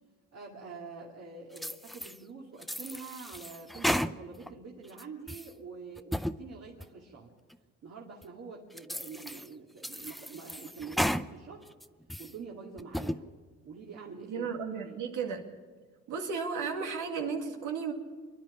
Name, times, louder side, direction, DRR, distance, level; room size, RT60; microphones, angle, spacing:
voice 1, 0.3-7.3 7.8-11.7 12.2-13.2 13.6-14.5 14.8-15.1, right 4 dB, 55° right, -2 dB, 2.5 m, -46 dB
sound 1, 1.6-2.2 2.6-4.5 4.9-5.5 6.0-6.4 6.8-6.9 7.5-7.6 8.2-8.3 8.8-9.5 9.8-11.3 11.7-12.3 12.8-13.2, equal, ahead, 0.5 m, -34 dB
voice 2, 14.3-15.5 16.1-17.9, right 5 dB, 90° right, 3 dB, 2.3 m, -34 dB
25.0 x 10.5 x 10.0 m, 1.5 s
cardioid pair, 90°, 30 cm